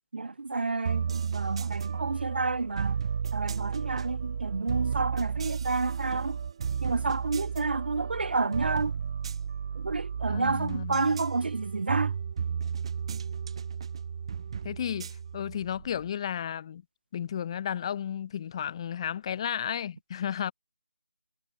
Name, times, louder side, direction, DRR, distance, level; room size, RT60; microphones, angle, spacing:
voice 1, 0.1-3.0 3.3-6.4 6.8-9.0 9.7-12.2, right 3 dB, 55° right, 1.4 m, -30 dB
sound 1, 0.8-16.1, right 7 dB, 25° right, 0.4 m, -33 dB
voice 2, 10.3-11.0 14.6-16.8 17.1-20.5, left 9 dB, 25° left, 1.1 m, -33 dB
figure-of-eight pair, 155°, 6 cm